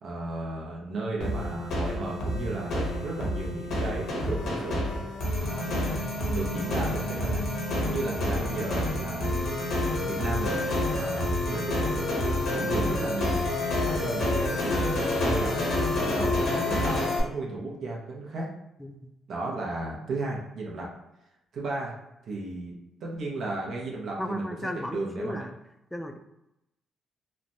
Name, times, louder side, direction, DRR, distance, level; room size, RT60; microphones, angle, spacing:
voice 1, 0.0-4.9 5.4-5.9 6.3-7.5 7.8-9.3 10.0-10.6 10.9-13.4 13.8-15.6 16.0-18.5 19.3-20.9 21.5-21.9 22.2-22.7 23.0-25.4, right 2 dB, 65° right, -2 dB, 0.7 m, -34 dB
sound 1, 1.2-17.2, left 1 dB, 70° left, 0.9 m, -28 dB
voice 2, 24.2-25.5 25.9-26.2, equal, 5° left, 6 dB, 0.3 m, -34 dB
3.2 x 2.1 x 2.6 m, 0.89 s
cardioid pair, 90°, 0 cm